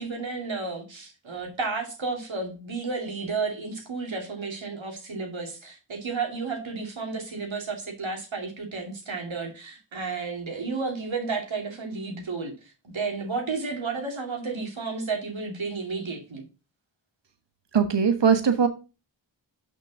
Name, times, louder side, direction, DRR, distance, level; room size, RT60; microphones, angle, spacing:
voice 1, 0.0-16.4, right 4 dB, 85° right, 2.5 m, -32 dB
voice 2, 17.7-18.7, right 6 dB, 65° right, 1.2 m, -20 dB
6.5 x 5.4 x 6.0 m
cardioid pair, 45°, 45 cm